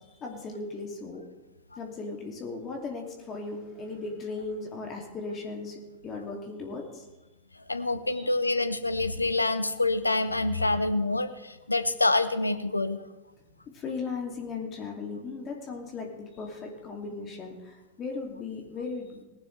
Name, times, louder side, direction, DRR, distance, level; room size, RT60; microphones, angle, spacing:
voice 1, 0.2-1.2 1.8-7.0 8.1-8.3 13.7-19.2, left 4 dB, 30° left, 1 dB, 2.5 m, -37 dB
voice 2, 7.7-13.0, left 2 dB, 85° left, 12 dB, 0.8 m, -26 dB
19.0 x 11.5 x 3.3 m, 1.1 s
figure-of-eight pair, 90°, 0 cm